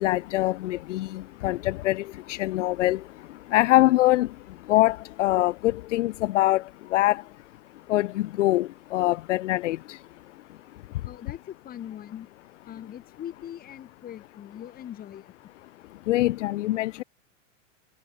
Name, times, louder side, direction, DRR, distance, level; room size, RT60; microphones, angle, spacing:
voice 1, 0.0-2.0 2.3-3.0 3.5-4.3 4.7-6.6 6.9-7.2 7.9-8.1 8.4-9.8 16.1-17.0, left 16 dB, 70° left, 1.2 m, -23 dB
voice 2, 11.0-12.3 12.7-15.3, left 10 dB, 25° left, 5.9 m, -41 dB
supercardioid pair, 150°, 38 cm